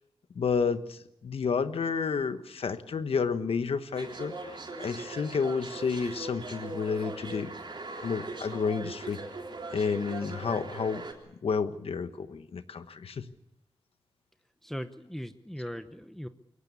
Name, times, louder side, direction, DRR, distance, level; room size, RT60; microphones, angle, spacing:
voice 1, 0.3-7.5 8.0-9.2 9.7-11.0 11.4-13.2, left 5 dB, 85° left, 10 dB, 1.3 m, -30 dB
sound 1, 3.9-11.1, right 3 dB, 55° right, 3.8 m, -40 dB
voice 2, 14.6-16.3, equal, 5° left, 9 dB, 0.9 m, -39 dB
23.0 x 18.0 x 8.4 m, 0.80 s
wide cardioid pair, 105°, 9 cm